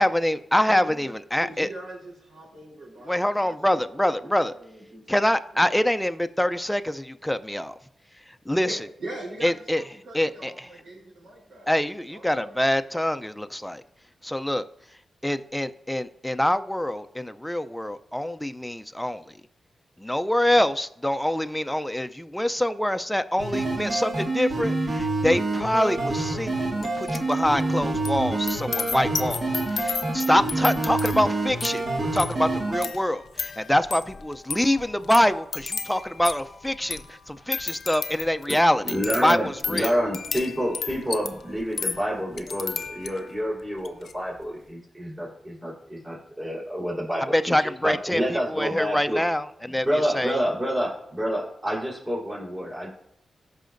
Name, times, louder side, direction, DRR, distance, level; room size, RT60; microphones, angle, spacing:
voice 1, 0.0-1.7 3.1-4.5 5.1-7.8 8.5-8.8 9.4-9.8 10.1-10.7 11.7-13.8 14.2-14.6 15.2-19.4 20.0-31.8 32.1-38.8 39.2-39.9 47.3-49.9 50.1-50.4, left 1 dB, 5° left, 0.5 m, -25 dB
voice 2, 0.6-5.3 8.6-12.6, right 1 dB, 85° right, 3.8 m, -42 dB
sound 1, 23.4-32.9, right 2 dB, 60° right, 1.9 m, -27 dB
sound 2, 26.8-27.3 27.6-43.4 43.8-44.1, left 5 dB, 70° left, 0.6 m, -34 dB
voice 3, 38.8-49.2 49.8-52.9, equal, 30° right, 3.8 m, -28 dB
14.5 x 5.7 x 2.6 m
cardioid pair, 60°, 0 cm